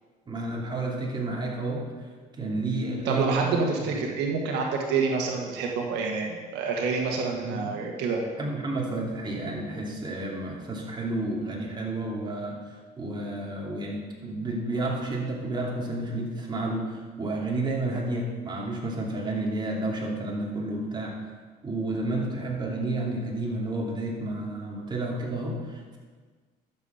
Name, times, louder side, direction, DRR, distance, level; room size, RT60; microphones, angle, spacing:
voice 1, 0.3-1.8 2.3-3.5 3.8-3.9 7.4-7.8 8.4-12.6 13.0-21.2 21.6-26.0, right 2 dB, 25° right, -2 dB, 2.7 m, -31 dB
voice 2, 3.0-8.2, right 4 dB, 85° right, 1 dB, 1.5 m, -27 dB
12.0 x 7.1 x 5.6 m, 1.5 s
cardioid pair, 110°, 17 cm